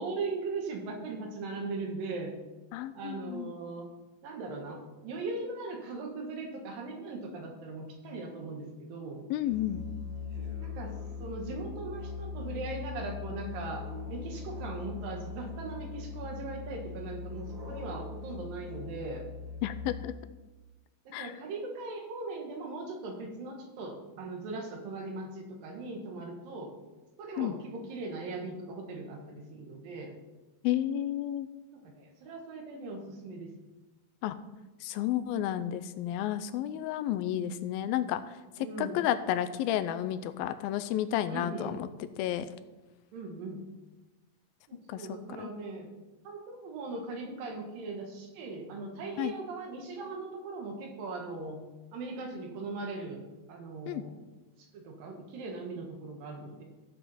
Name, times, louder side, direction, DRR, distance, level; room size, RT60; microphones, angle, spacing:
voice 1, 0.0-2.3 2.9-3.9 4.2-9.2 10.6-13.8 14.1-19.2 21.1-26.7 27.2-30.1 31.7-33.5 38.6-39.0 41.3-41.8 43.1-43.6 44.7-45.9 46.2-51.6 51.9-53.2 53.5-54.1 54.7-56.6, right 3 dB, 75° right, 2 dB, 3.1 m, -39 dB
voice 2, 2.7-3.6 9.3-9.8 19.6-20.1 21.1-21.4 27.4-27.6 30.6-31.5 34.2-34.4 34.8-42.5 44.9-45.5 49.2-49.3 53.9-54.0, left 12 dB, 90° left, 11 dB, 2.4 m, -32 dB
Musical instrument, 9.5-20.3, left 5 dB, 55° right, 3.5 m, -40 dB
14.5 x 6.9 x 4.2 m, 1.1 s
omnidirectional pair, 4.2 m